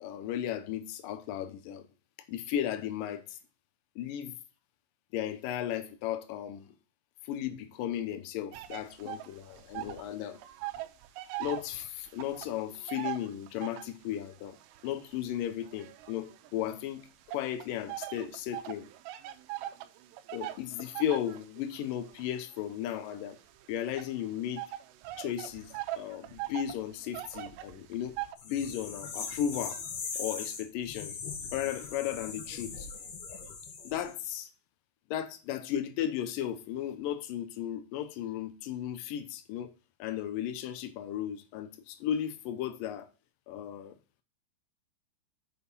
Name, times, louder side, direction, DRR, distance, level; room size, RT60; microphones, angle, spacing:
voice 1, 0.0-1.9 2.3-3.4 4.0-4.4 5.1-6.8 7.2-10.4 11.4-14.6 14.8-18.9 20.3-23.4 23.7-24.6 25.2-28.2 28.4-29.8 30.2-31.2 31.5-32.9 33.8-34.5 35.1-39.7 40.0-43.1 43.5-44.0, left 10 dB, 85° left, 1.9 m, -35 dB
sound 1, 8.5-10.1 10.4-14.0 14.6-16.7 17.3-28.4, right 15 dB, 80° right, 2.8 m, -41 dB
sound 2, 28.4-34.2, left 5 dB, 70° left, 3.5 m, -40 dB
6.9 x 6.5 x 5.4 m
omnidirectional pair, 5.0 m